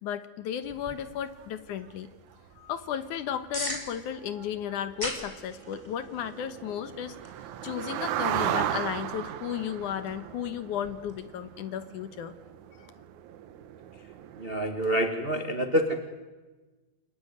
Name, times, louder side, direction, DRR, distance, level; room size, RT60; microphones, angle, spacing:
voice 1, 0.0-2.1 2.6-7.2 7.6-12.3 12.8-12.9, left 9 dB, 70° left, 12 dB, 2.5 m, -34 dB
sound 1, 0.6-11.2, left 1 dB, 10° left, 3.3 m, -44 dB
sound 2, 0.9-1.0 1.4-1.5 1.7-1.9 2.3-2.6 3.0-3.1 3.4-3.5 3.7-3.9 4.2-14.6, right 11 dB, 70° right, 2.2 m, -36 dB
voice 2, 14.4-16.1, equal, 50° right, 6 dB, 0.6 m, -27 dB
29.0 x 21.5 x 9.6 m, 1.3 s
omnidirectional pair, 4.0 m